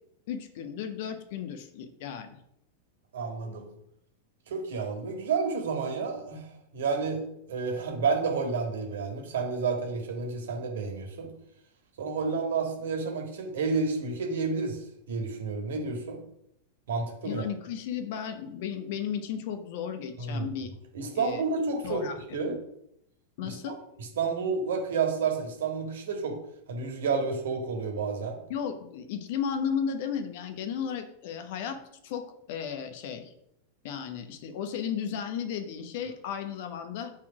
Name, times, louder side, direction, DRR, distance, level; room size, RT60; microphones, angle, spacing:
voice 1, 0.3-2.3 17.2-20.7 21.1-21.4 21.8-22.2 23.4-23.8 28.5-31.8 32.0-33.3 33.8-37.1, left 7 dB, 50° left, 8 dB, 0.9 m, -34 dB
voice 2, 3.1-3.7 4.5-6.5 6.7-7.2 7.5-11.3 12.0-14.8 15.1-16.2 16.9-17.5 20.2-20.5 20.9-22.0 22.3-22.6 23.4-23.7 24.0-26.4 26.7-28.4, right 4 dB, 60° right, 2 dB, 1.7 m, -30 dB
5.7 x 4.4 x 6.1 m, 0.75 s
figure-of-eight pair, 90°, 0 cm